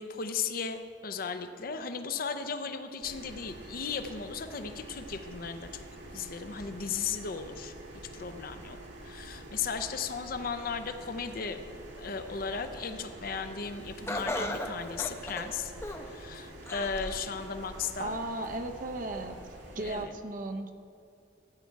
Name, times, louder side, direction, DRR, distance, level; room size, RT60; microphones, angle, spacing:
voice 1, 0.0-5.8 6.1-7.7 8.1-8.8 9.0-11.6 12.0-15.7 16.0-18.2 19.8-20.1, left 5 dB, 55° left, 8 dB, 0.6 m, -36 dB
sound 1, 3.0-20.0, right 1 dB, 80° right, 2.0 m, -47 dB
Laughter, 14.1-16.2 16.7-17.3 17.8-17.9 18.8-18.9, left 1 dB, 15° left, 0.7 m, -36 dB
voice 2, 18.0-19.4 19.7-20.7, right 2 dB, 50° right, 6 dB, 0.6 m, -35 dB
13.5 x 8.5 x 4.6 m, 2.5 s
head